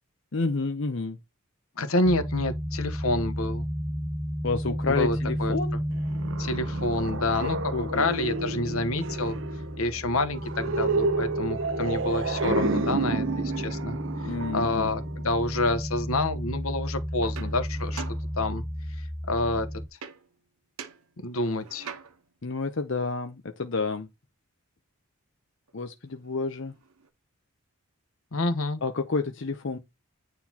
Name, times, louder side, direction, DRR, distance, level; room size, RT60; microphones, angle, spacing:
voice 1, 0.3-1.2 4.4-5.8 7.4-8.0 14.2-14.9 22.4-24.1 25.7-26.7 28.8-29.8, left 4 dB, 55° left, 0.7 m, -30 dB
voice 2, 1.8-3.7 4.9-5.6 6.4-9.4 9.8-14.0 14.5-18.0 18.4-18.6 19.0-19.7 21.2-21.9 28.3-28.8, left 2 dB, 75° left, 1.0 m, -28 dB
sound 1, 2.0-19.9, equal, 5° right, 0.5 m, -33 dB
sound 2, 5.9-15.6, right 3 dB, 55° right, 0.6 m, -30 dB
sound 3, 17.2-18.8 20.0-20.5 20.8-22.4 25.7-25.8 26.1-27.1, right 6 dB, 85° right, 1.0 m, -44 dB
9.3 x 4.0 x 2.9 m
head